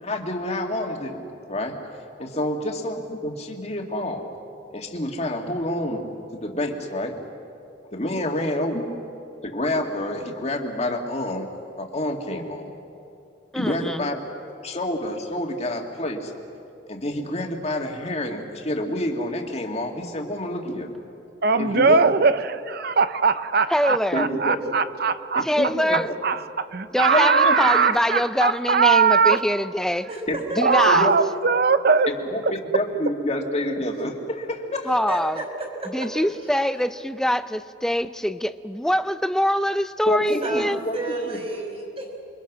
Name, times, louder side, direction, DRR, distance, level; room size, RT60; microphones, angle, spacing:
voice 1, 0.0-1.2 1.5-1.8 2.2-4.2 4.7-6.1 6.3-7.2 7.9-8.9 9.4-11.5 11.8-12.7 13.6-14.2 14.6-16.3 16.9-20.9 21.6-22.0 24.1-24.6 25.3-26.1 27.1-27.5 30.3-31.1 32.3-34.9 40.1-41.0 41.3-41.4, left 1 dB, 35° left, 2.2 m, -28 dB
voice 2, 2.2-2.6 8.0-8.4 30.1-30.6 35.1-36.1 40.2-42.2, right 2 dB, 35° right, 4.6 m, -33 dB
voice 3, 13.5-14.0 23.7-24.3 25.4-26.1 26.9-30.1 30.6-31.1 34.9-35.4 35.9-40.8, equal, 5° left, 0.5 m, -24 dB
voice 4, 21.4-25.5 26.2-29.4 30.6-32.1, right 5 dB, 55° right, 0.8 m, -20 dB
29.0 x 24.0 x 6.2 m
head